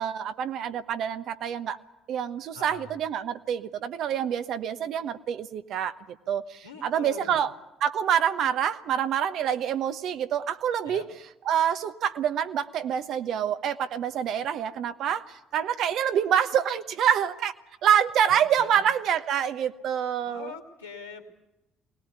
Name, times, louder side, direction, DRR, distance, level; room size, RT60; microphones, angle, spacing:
voice 1, 0.0-1.8 2.1-6.0 6.3-7.5 7.8-11.0 11.5-17.5 17.8-20.5, right 9 dB, 55° right, 10 dB, 1.1 m, -26 dB
voice 2, 2.5-3.0 6.6-7.5 10.8-11.1 18.3-18.8 20.2-21.2, left 5 dB, 85° left, -2 dB, 2.6 m, -43 dB
24.5 x 19.5 x 8.2 m, 0.92 s
figure-of-eight pair, 50°, 0 cm